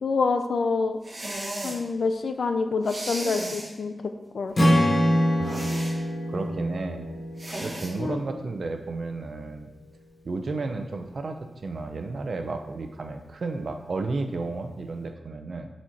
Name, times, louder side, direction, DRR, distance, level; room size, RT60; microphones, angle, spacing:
voice 1, 0.0-1.0 1.6-3.9 4.3-4.5 8.0-8.2, left 4 dB, 75° left, 7 dB, 0.6 m, -26 dB
sound 1, 1.0-1.8 2.8-3.7 5.4-6.0 7.4-7.9, right 1 dB, 30° right, 1.5 m, -35 dB
Strum, 4.5-8.8, equal, 40° left, 1.7 m, -25 dB
voice 2, 5.4-7.1 7.6-9.7 10.2-15.7, right 3 dB, 65° right, 6 dB, 0.7 m, -33 dB
7.2 x 4.3 x 4.5 m, 1.0 s
wide cardioid pair, 110°, 0 cm